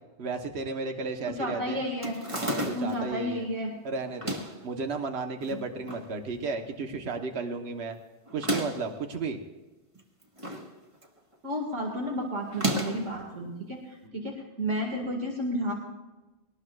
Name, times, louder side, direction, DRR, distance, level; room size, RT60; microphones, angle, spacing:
voice 1, 0.2-1.8 2.3-3.5 3.8-7.9 8.3-9.4, right 4 dB, 60° right, 4 dB, 1.4 m, -33 dB
voice 2, 1.2-2.2 2.7-3.7 5.5-5.6 11.4-15.7, equal, 75° right, -1 dB, 2.5 m, -32 dB
sound 1, 2.0-3.0 4.1-4.6 5.4-6.1 6.4-6.5 6.7-6.8 8.3-8.9 9.9-10.7 11.0-11.3 12.5-13.1, equal, 25° right, 1.5 m, -32 dB
22.5 x 18.5 x 2.5 m, 1.1 s
omnidirectional pair, 1.2 m